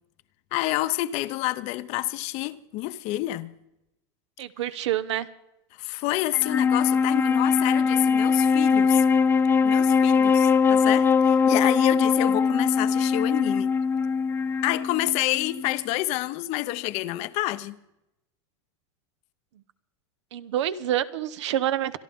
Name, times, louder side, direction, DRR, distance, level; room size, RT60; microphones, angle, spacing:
voice 1, 0.5-3.5 5.8-9.0 9.6-13.7 14.6-17.8, left 17 dB, 50° left, 0.7 m, -28 dB
voice 2, 4.4-5.3 20.3-22.0, right 12 dB, 80° right, 0.9 m, -27 dB
Wind instrument woodwind instrument, 6.3-15.8, left 5 dB, 15° left, 0.4 m, -21 dB
26.0 x 11.0 x 3.6 m
supercardioid pair, 135°, 15 cm